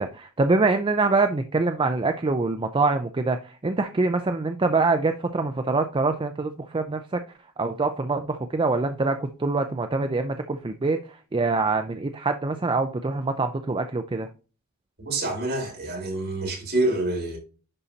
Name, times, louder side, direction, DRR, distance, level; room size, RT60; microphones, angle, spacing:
voice 1, 0.0-7.2 7.6-14.3, right 3 dB, 20° right, 0.4 m, -25 dB
voice 2, 15.0-17.4, right 2 dB, 45° right, 4.0 m, -27 dB
11.0 x 4.2 x 2.7 m
head